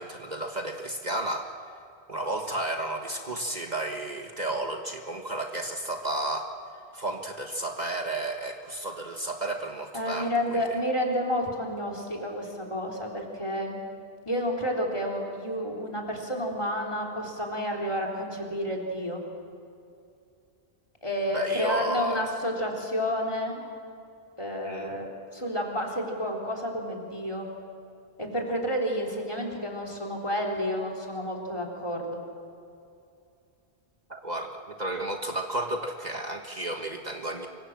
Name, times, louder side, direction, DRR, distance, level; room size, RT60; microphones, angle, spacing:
voice 1, 0.0-1.5 2.1-6.5 6.9-10.8 21.3-22.3 24.6-24.9 34.1-37.5, right 1 dB, 40° right, 3 dB, 1.6 m, -32 dB
voice 2, 9.9-13.8 14.3-19.2 21.0-23.6 24.4-27.5 28.2-32.2, equal, 30° left, 1 dB, 4.0 m, -30 dB
25.5 x 24.5 x 7.5 m, 2.5 s
omnidirectional pair, 1.1 m